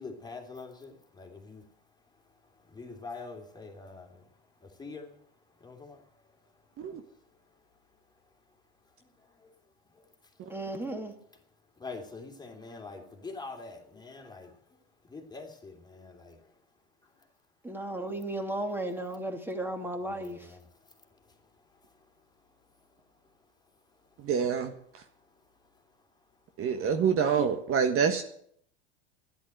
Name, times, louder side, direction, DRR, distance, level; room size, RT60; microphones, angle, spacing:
voice 1, 0.0-1.6 2.7-4.2 4.6-5.1 5.6-6.0 9.4-9.5 11.8-14.5 15.1-16.4 20.1-20.6, left 3 dB, 10° left, 3.1 m, -44 dB
voice 2, 10.5-11.1 17.6-20.5, right 1 dB, 5° right, 2.6 m, -35 dB
voice 3, 24.2-25.0 26.6-28.2, right 7 dB, 40° right, 1.5 m, -27 dB
12.5 x 11.0 x 7.9 m
hypercardioid pair, 105°, 34 cm